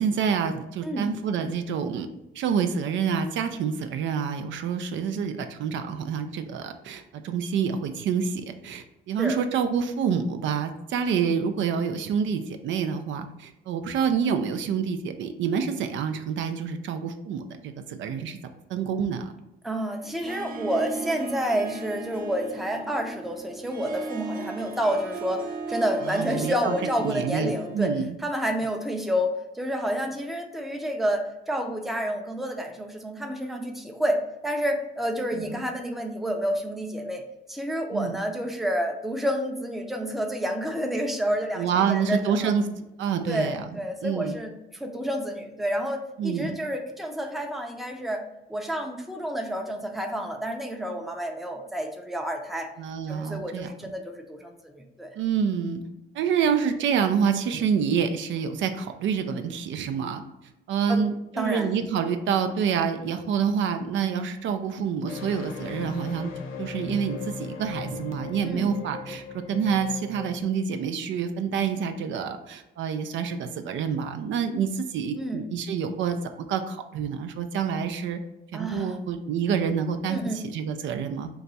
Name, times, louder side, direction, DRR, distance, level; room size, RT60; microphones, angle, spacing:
voice 1, 0.0-2.1 2.3-18.4 18.7-19.3 26.1-26.7 27.0-28.1 35.3-35.6 37.9-38.2 41.6-42.6 43.0-43.6 44.0-44.4 46.2-46.6 52.8-53.7 55.2-55.8 56.1-60.2 60.7-66.3 66.6-78.2 78.5-81.3, right 7 dB, 70° right, 7 dB, 0.4 m, -27 dB
voice 2, 19.6-27.9 28.2-37.2 37.5-42.5 43.2-48.2 48.5-52.7 53.1-55.1 60.9-61.0 61.4-61.8 68.4-68.7 75.1-75.5 78.5-79.0 80.1-80.4, equal, ahead, 3 dB, 0.5 m, -29 dB
Harp, 20.0-27.9, right 4 dB, 45° right, 0.7 m, -37 dB
sound 1, 65.1-70.4, left 5 dB, 90° left, 0.5 m, -38 dB
3.9 x 2.3 x 4.0 m, 0.92 s
cardioid pair, 90°, 20 cm